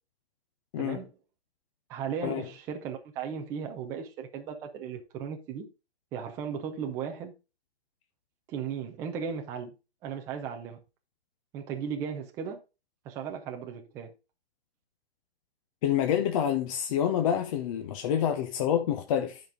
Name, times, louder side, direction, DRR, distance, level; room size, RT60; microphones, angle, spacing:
voice 1, 0.8-1.1 1.9-5.7 6.1-7.3 8.5-9.7 10.0-10.8 11.5-12.6 13.0-14.1, right 7 dB, 10° right, 0.5 m, -36 dB
voice 2, 15.8-19.4, left 9 dB, 30° left, 0.7 m, -27 dB
10.5 x 5.2 x 3.7 m
hypercardioid pair, 150°, 33 cm